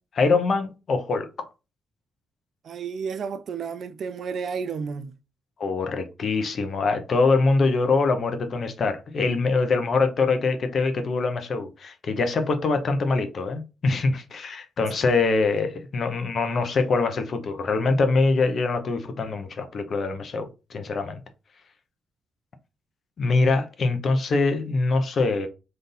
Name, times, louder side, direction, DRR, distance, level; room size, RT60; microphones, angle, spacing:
voice 1, 0.1-1.5 5.6-21.2 23.2-25.5, left 3 dB, 50° left, 0.8 m, -24 dB
voice 2, 2.6-5.1, right 6 dB, 55° right, 0.3 m, -31 dB
3.8 x 2.6 x 3.8 m
hypercardioid pair, 40°, 0 cm